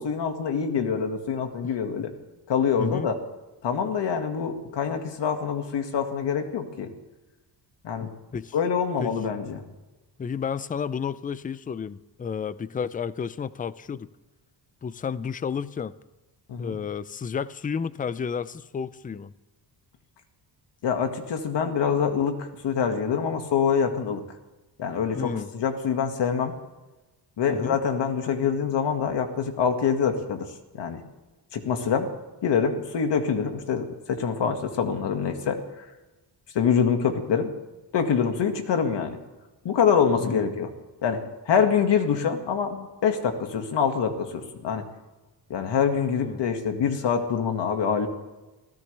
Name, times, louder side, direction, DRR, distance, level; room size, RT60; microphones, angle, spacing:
voice 1, 0.0-2.1 2.5-3.1 3.6-6.9 7.8-8.1 8.5-9.6 16.5-16.8 20.8-24.2 24.8-26.5 27.4-30.5 30.7-31.0 31.5-32.1 32.4-35.9 36.5-37.5 37.9-39.2 39.6-40.7 41.0-44.8 45.5-48.1, left 7 dB, 75° left, 5 dB, 2.0 m, -25 dB
voice 2, 8.0-8.5 9.0-9.1 10.2-14.1 14.8-15.9 16.6-19.3 25.1-25.5 27.5-27.8 40.2-40.5 46.2-46.4, left 6 dB, 20° left, 16 dB, 0.4 m, -31 dB
26.5 x 15.5 x 3.4 m, 1.1 s
cardioid pair, 130°, 43 cm